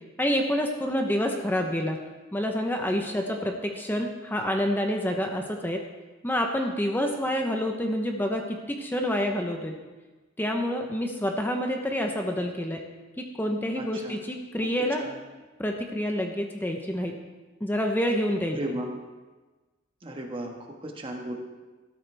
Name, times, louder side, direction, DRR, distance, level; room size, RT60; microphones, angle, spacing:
voice 1, 0.2-2.0 2.3-5.8 6.2-9.8 10.4-12.8 13.4-15.0 15.6-17.1 17.6-18.6, equal, 10° left, 3 dB, 0.8 m, -28 dB
voice 2, 13.8-14.2 14.8-15.2 18.5-18.9 20.0-21.4, right 1 dB, 25° right, 1 dB, 1.5 m, -35 dB
13.5 x 12.5 x 3.4 m, 1.2 s
head